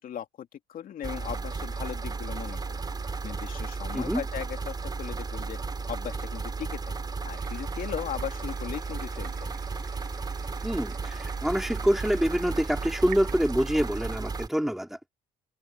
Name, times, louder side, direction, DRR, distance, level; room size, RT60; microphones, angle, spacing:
voice 1, 0.0-2.8 3.2-5.6 5.9-6.9 7.2-9.3, left 10 dB, 55° left, 2.5 m, -38 dB
sound 1, 1.0-14.5, right 4 dB, 25° right, 3.5 m, -34 dB
sound 2, 7.4-13.6, right 15 dB, 75° right, 5.8 m, -48 dB
voice 2, 10.6-15.0, equal, ahead, 4.0 m, -26 dB
cardioid pair, 110°, 17 cm